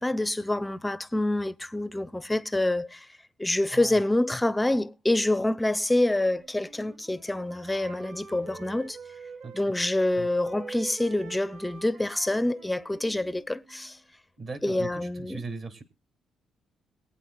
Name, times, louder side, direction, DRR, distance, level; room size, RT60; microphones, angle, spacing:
voice 1, 0.0-3.1 3.4-9.0 9.5-14.0 14.6-15.4, left 1 dB, 10° left, 0.5 m, -27 dB
voice 2, 3.7-4.0 9.4-9.8 10.1-10.3 14.4-15.8, right 4 dB, 45° right, 1.9 m, -39 dB
Wind instrument woodwind instrument, 6.1-9.7 10.0-14.0, right 5 dB, 70° right, 6.1 m, -46 dB
22.5 x 8.6 x 2.3 m
cardioid pair, 90°, 0 cm